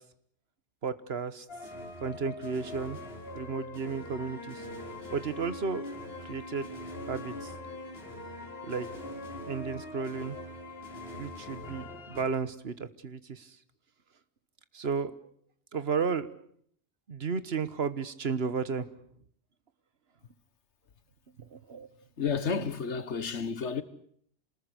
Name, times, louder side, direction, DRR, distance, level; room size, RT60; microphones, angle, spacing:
voice 1, 0.8-1.4 2.0-3.0 3.3-4.6 5.1-5.9 6.2-6.7 7.1-7.5 8.6-8.9 9.5-10.4 11.2-13.5 14.7-15.2 15.7-16.3 17.1-18.9 21.4-21.9, right 5 dB, 65° right, 1.5 m, -33 dB
sound 1, 1.5-12.2, left 2 dB, 55° left, 4.4 m, -42 dB
voice 2, 22.2-23.8, left 5 dB, 85° left, 1.6 m, -31 dB
27.5 x 20.0 x 8.3 m
omnidirectional pair, 1.1 m